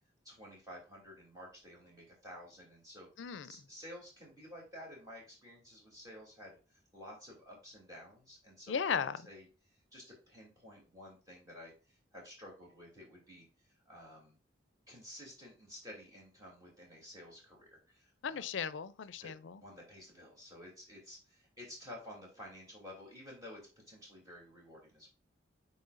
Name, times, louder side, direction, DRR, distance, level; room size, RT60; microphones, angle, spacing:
voice 1, 0.2-9.0 9.3-14.4 14.9-18.5 19.2-23.6 23.9-25.1, left 1 dB, 20° right, 2.9 m, -52 dB
voice 2, 3.2-3.5 8.7-9.2 18.2-19.6, left 7 dB, 75° left, 0.4 m, -36 dB
9.5 x 4.2 x 2.5 m
head